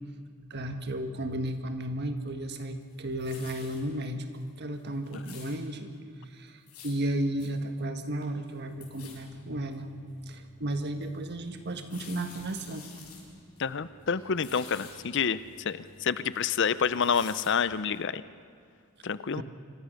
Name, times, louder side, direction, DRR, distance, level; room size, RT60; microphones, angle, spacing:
voice 1, 0.5-4.3 4.6-5.9 6.3-9.9 10.3-12.9 19.3-19.4, right 1 dB, 50° right, 7 dB, 1.6 m, -34 dB
sound 1, 2.8-3.8 4.3-4.5 4.7-5.6 6.5-7.0 7.4-7.5 7.8-7.9 8.2-8.5 8.8-9.2 9.7-9.8 10.4-10.5 11.6-13.2 13.6-13.7 14.0-14.9 15.4-16.4 16.6-17.5 17.9-18.0, left 6 dB, 90° left, 6.7 m, -49 dB
sound 2, 8.8-17.8, left 1 dB, 30° left, 4.9 m, -57 dB
voice 2, 13.6-18.2 19.0-19.4, left 6 dB, 55° left, 15 dB, 0.6 m, -28 dB
26.0 x 25.0 x 6.5 m, 2.2 s
head